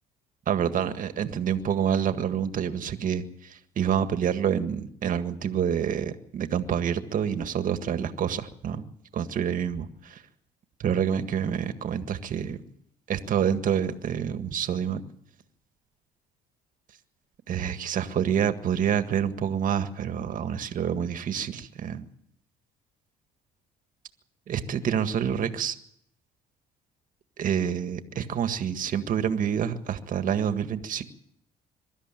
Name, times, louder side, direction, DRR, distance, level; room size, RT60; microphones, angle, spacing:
voice 1, 0.5-3.2 3.8-8.9 9.1-10.2 10.8-12.6 13.1-15.0 17.5-22.1 24.5-25.8 27.4-31.0, right 8 dB, 50° right, 9 dB, 1.8 m, -27 dB
23.5 x 13.0 x 9.1 m, 0.69 s
cardioid pair, 110°, 17 cm